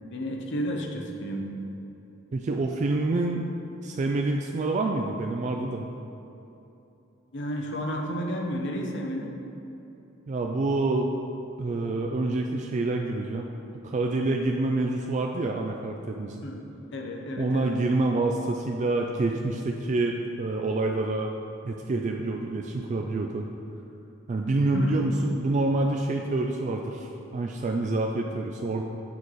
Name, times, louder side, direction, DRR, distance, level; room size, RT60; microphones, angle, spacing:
voice 1, 0.1-1.5 7.3-9.4 16.4-17.7 24.7-25.0, equal, 60° left, 2 dB, 0.8 m, -32 dB
voice 2, 2.3-3.5 3.8-5.8 10.3-11.1 11.6-13.5 13.8-16.4 17.4-21.3 21.6-23.5 24.3-28.8, right 2 dB, 35° right, 2 dB, 0.3 m, -27 dB
8.7 x 4.7 x 4.1 m, 2.9 s
head